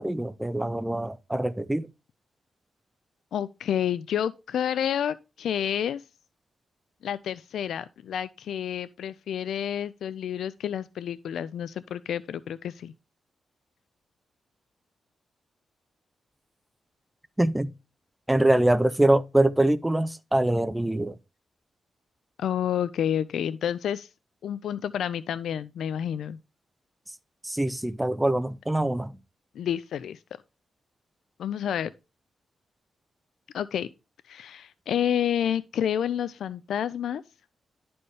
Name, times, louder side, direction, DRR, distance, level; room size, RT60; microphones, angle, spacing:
voice 1, 0.0-1.9 17.4-17.7 18.3-21.2 27.4-29.1, right 1 dB, 5° right, 0.4 m, -24 dB
voice 2, 3.3-6.0 7.0-12.9 22.4-24.1 24.4-26.4 29.6-30.2 31.4-31.9 33.5-33.9 34.3-37.2, left 9 dB, 85° left, 0.3 m, -29 dB
11.0 x 4.3 x 3.3 m
wide cardioid pair, 145°, 0 cm